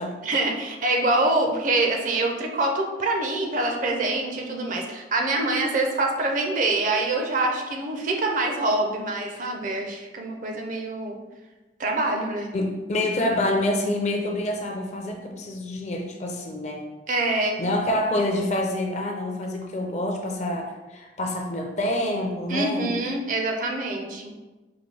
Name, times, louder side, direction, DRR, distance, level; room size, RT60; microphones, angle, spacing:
voice 1, 0.2-11.2 11.8-12.5 17.1-17.6 22.5-24.3, right 2 dB, 45° right, 2 dB, 0.5 m, -25 dB
voice 2, 12.5-16.8 17.6-22.9, left 1 dB, 40° left, 2 dB, 0.5 m, -27 dB
4.7 x 2.2 x 3.3 m, 1.1 s
head